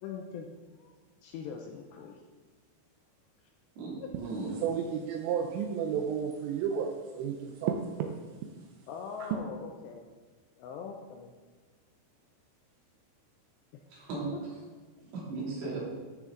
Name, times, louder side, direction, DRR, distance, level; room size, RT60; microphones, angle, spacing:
voice 1, 0.0-0.5 0.8-0.9 1.2-2.2 8.9-10.0 10.6-11.3 14.3-14.4, left 6 dB, 80° left, 3 dB, 2.6 m, -41 dB
voice 2, 3.8-4.6 13.9-14.6 15.1-15.8, right 3 dB, 65° right, -6 dB, 4.9 m, -36 dB
voice 3, 4.6-8.1 9.2-9.4, right 7 dB, 80° right, 4 dB, 2.6 m, -32 dB
14.0 x 6.6 x 3.8 m, 1.4 s
omnidirectional pair, 5.5 m